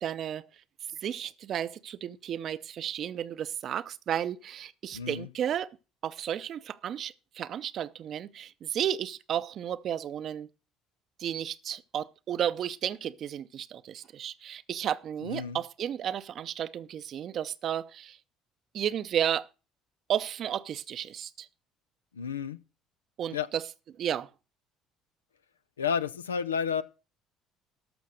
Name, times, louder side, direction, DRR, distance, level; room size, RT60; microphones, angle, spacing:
voice 1, 0.0-0.5 1.0-5.8 6.0-10.5 11.2-18.2 18.7-19.5 20.1-21.5 23.2-23.6 24.0-24.3, right 9 dB, 50° right, 0.6 m, -33 dB
voice 2, 4.9-5.3 15.2-15.6 22.1-22.6 23.3-23.5 25.8-26.8, left 7 dB, 85° left, 0.5 m, -31 dB
13.0 x 6.1 x 6.4 m
hypercardioid pair, 55°, 0 cm